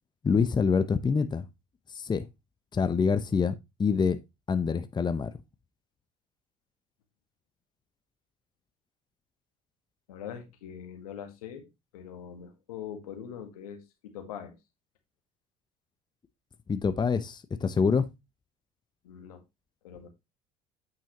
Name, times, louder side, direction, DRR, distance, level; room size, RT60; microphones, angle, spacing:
voice 1, 0.2-1.5 1.9-2.3 2.7-3.5 3.8-4.2 4.5-5.3 16.7-18.1, left 5 dB, 25° left, 0.8 m, -26 dB
voice 2, 10.1-11.7 11.9-14.5 19.0-19.4 19.8-20.1, left 8 dB, 80° left, 1.7 m, -42 dB
8.8 x 5.8 x 3.0 m
hypercardioid pair, 65°, 19 cm